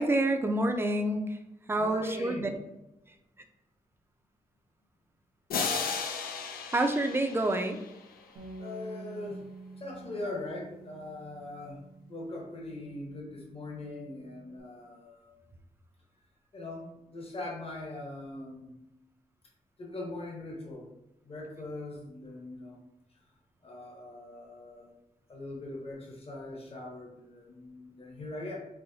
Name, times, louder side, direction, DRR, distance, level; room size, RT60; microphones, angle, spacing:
voice 1, 0.0-1.4 1.7-2.5 6.7-7.8, right 1 dB, 15° right, 5 dB, 0.4 m, -27 dB
voice 2, 1.8-2.6 8.6-9.4 9.8-11.8 12.1-15.4 16.5-18.7 19.8-20.9 21.2-22.8 23.6-24.9 25.3-28.6, left 2 dB, 40° left, -2 dB, 0.9 m, -41 dB
sound 1, 5.5-8.2, left 5 dB, 90° left, 0.5 m, -34 dB
Bass guitar, 8.4-14.6, right 2 dB, 80° right, 0.8 m, -49 dB
5.4 x 2.1 x 2.7 m, 0.94 s
cardioid pair, 90°, 15 cm